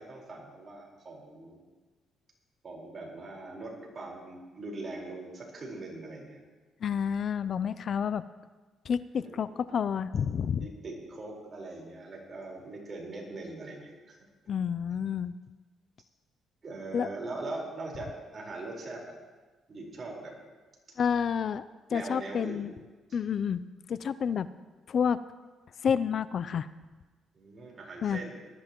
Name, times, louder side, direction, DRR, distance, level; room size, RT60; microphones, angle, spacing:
voice 1, 0.0-1.6 2.6-6.4 9.2-9.4 10.6-14.2 14.9-15.0 16.6-19.2 19.7-20.3 21.9-22.6 23.1-23.2 27.3-28.3, right 2 dB, 40° right, -1 dB, 4.3 m, -41 dB
voice 2, 6.8-8.2 8.9-10.7 14.5-15.3 16.9-17.1 21.0-21.6 21.9-22.7 23.1-23.6 23.9-24.5 24.9-25.2 25.8-26.7 28.0-28.2, left 7 dB, 55° left, 15 dB, 0.4 m, -29 dB
19.5 x 13.0 x 3.0 m, 1.3 s
cardioid pair, 90°, 0 cm